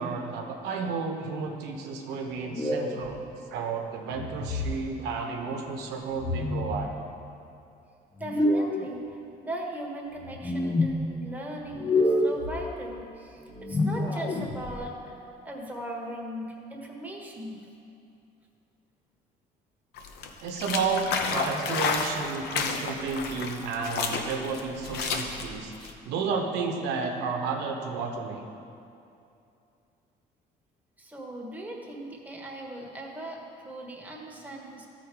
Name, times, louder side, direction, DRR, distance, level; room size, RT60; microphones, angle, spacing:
voice 1, 0.0-3.2 3.5-7.0 20.4-28.4, right 4 dB, 85° right, 3 dB, 1.0 m, -32 dB
sound 1, 2.5-3.1 4.1-4.8 6.2-6.8 8.2-8.9 10.2-10.9 11.7-12.5 13.5-14.7, left 1 dB, 25° left, 0.9 m, -27 dB
voice 2, 8.2-9.2 9.4-15.2 15.4-17.6 31.0-34.9, right 1 dB, 10° right, -1 dB, 1.4 m, -39 dB
sound 2, 20.0-25.9, left 5 dB, 75° left, 0.8 m, -31 dB
13.5 x 4.6 x 4.7 m, 2.6 s
cardioid pair, 110°, 17 cm